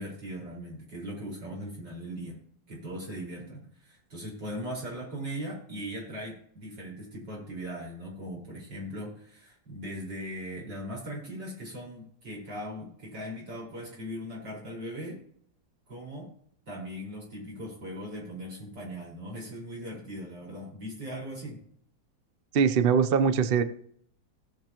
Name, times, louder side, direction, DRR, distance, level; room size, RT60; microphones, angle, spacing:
voice 1, 0.0-2.4 2.7-15.2 15.9-16.3 16.7-21.6, equal, 65° right, -4 dB, 5.5 m, -39 dB
voice 2, 22.5-23.6, right 6 dB, 85° right, 11 dB, 0.5 m, -22 dB
18.0 x 7.2 x 3.0 m, 0.65 s
omnidirectional pair, 2.1 m